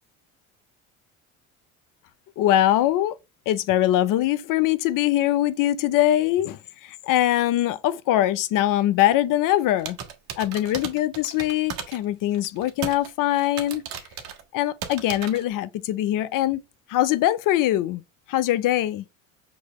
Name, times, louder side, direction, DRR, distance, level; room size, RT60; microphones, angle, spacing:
voice 1, 2.4-3.2 3.5-10.0 10.4-13.8 14.5-16.6 16.9-18.0 18.3-19.0, left 13 dB, 55° left, 0.6 m, -22 dB
sound 1, 9.8-12.0 12.3-13.1 13.3-14.4 14.8-15.4, right 8 dB, 65° right, 1.1 m, -35 dB
6.0 x 2.9 x 3.0 m
hypercardioid pair, 75°, 39 cm